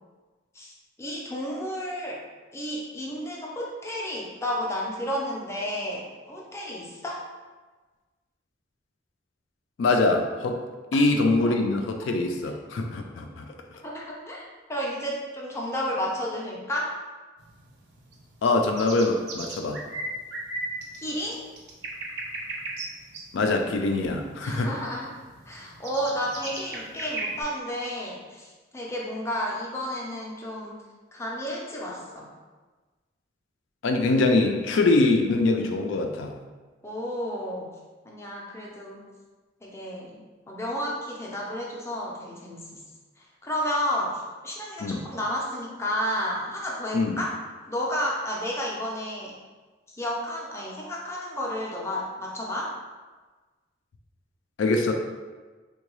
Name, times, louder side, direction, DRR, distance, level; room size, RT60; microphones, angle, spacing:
voice 1, 0.5-2.2 2.5-7.2 13.8-17.0 21.0-21.4 24.4-25.1 25.5-30.7 31.1-32.3 36.8-37.7 38.1-39.0 39.6-40.1 40.5-42.6 43.4-47.4 47.7-49.4 49.9-52.7, equal, 15° left, -3 dB, 0.4 m, -31 dB
voice 2, 9.8-10.6 10.9-13.4 18.4-19.8 23.3-24.7 33.8-36.3 44.8-45.0 46.9-47.2 54.6-54.9, left 2 dB, 80° left, 4 dB, 0.4 m, -23 dB
sound 1, 17.4-27.4, right 2 dB, 60° right, 0.5 m, -37 dB
3.7 x 2.2 x 3.0 m, 1.3 s
head